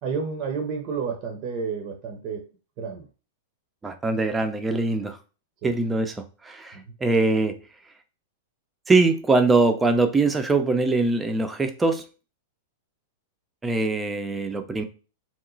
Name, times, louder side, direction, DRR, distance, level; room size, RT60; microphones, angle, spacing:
voice 1, 0.0-2.5 2.8-3.1 5.6-5.7 6.7-6.9, right 5 dB, 45° right, 4 dB, 0.7 m, -31 dB
voice 2, 3.8-5.2 5.6-7.6 8.9-12.0 13.6-14.8, right 3 dB, 15° right, 7 dB, 0.5 m, -22 dB
3.0 x 2.1 x 3.8 m, 0.34 s
hypercardioid pair, 120°, 0 cm